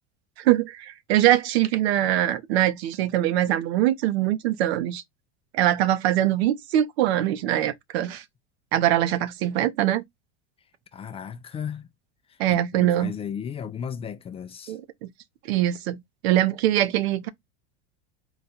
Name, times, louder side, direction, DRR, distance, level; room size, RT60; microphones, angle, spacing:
voice 1, 0.4-5.0 5.5-8.2 8.7-10.0 12.4-13.1 14.7-15.1 15.4-17.3, right 13 dB, 80° right, 0.7 m, -23 dB
voice 2, 10.9-11.9 12.3-14.8, left 7 dB, 20° left, 0.3 m, -35 dB
4.0 x 2.3 x 4.1 m
supercardioid pair, 125°, 31 cm